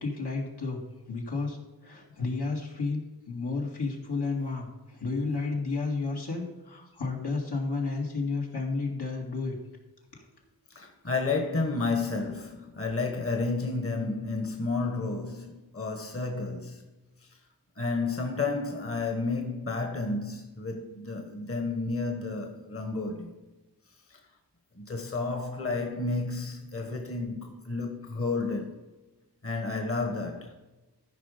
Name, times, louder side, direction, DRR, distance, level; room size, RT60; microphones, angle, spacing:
voice 1, 0.0-1.6 1.8-9.6, left 3 dB, 75° left, 2.3 m, -32 dB
voice 2, 10.7-16.8 17.8-23.3 24.1-24.2 24.7-28.8 29.4-30.5, left 3 dB, 35° left, 1.3 m, -31 dB
14.0 x 5.3 x 5.1 m
wide cardioid pair, 65°, 40 cm